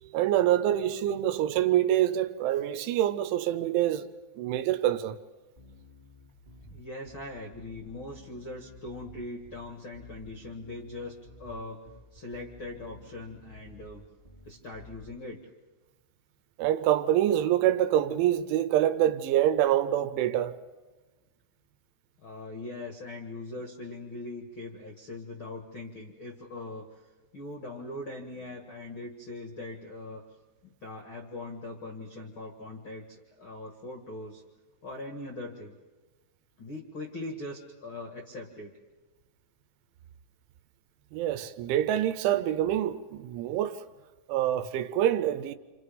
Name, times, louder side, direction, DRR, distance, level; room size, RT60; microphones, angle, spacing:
voice 1, 0.0-4.1 4.4-5.2 16.6-20.6 41.1-43.8 44.3-45.6, right 12 dB, 80° right, 3.3 m, -26 dB
Bass guitar, 5.6-15.2, left 1 dB, 15° right, 1.2 m, -52 dB
voice 2, 6.7-11.8 12.1-14.0 14.4-15.4 22.2-27.0 27.3-30.2 30.6-34.4 34.8-35.7 36.6-38.7, left 2 dB, 55° left, 1.4 m, -41 dB
28.5 x 27.5 x 5.3 m
omnidirectional pair, 5.5 m